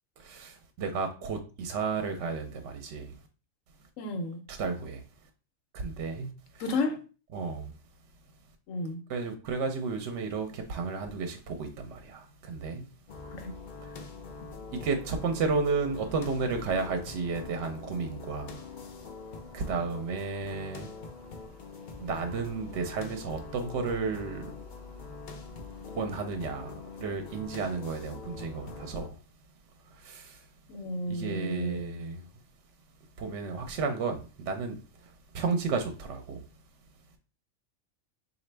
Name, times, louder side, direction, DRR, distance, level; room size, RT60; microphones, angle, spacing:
voice 1, 0.2-3.1 4.5-5.0 5.7-6.6 7.3-7.7 9.1-12.9 13.3-13.4 13.8-14.1 14.7-18.7 19.5-20.9 22.0-24.5 25.9-29.2 29.9-30.5 31.1-32.2 33.2-36.4, right 4 dB, 70° right, 0.9 m, -33 dB
voice 2, 4.0-4.4 6.6-7.0 8.7-9.0 13.3-13.5 30.7-31.9, left 2 dB, 85° left, 1.1 m, -32 dB
sound 1, 13.1-29.1, left 4 dB, 60° left, 0.5 m, -44 dB
4.0 x 2.6 x 3.2 m
omnidirectional pair, 1.3 m